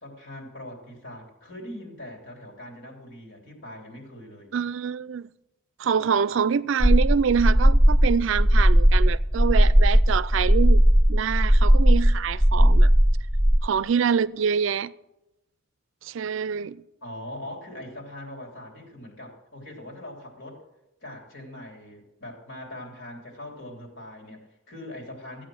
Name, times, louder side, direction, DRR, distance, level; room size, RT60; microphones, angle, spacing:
voice 1, 0.0-4.5 17.0-20.6 21.0-25.4, left 1 dB, 60° left, 3.3 m, -41 dB
voice 2, 4.5-5.3 5.8-10.8 11.1-12.9 13.6-14.9 16.0-16.8, right 6 dB, 70° right, 0.4 m, -25 dB
sound 1, 6.8-13.6, equal, ahead, 0.5 m, -17 dB
14.5 x 8.8 x 6.3 m
head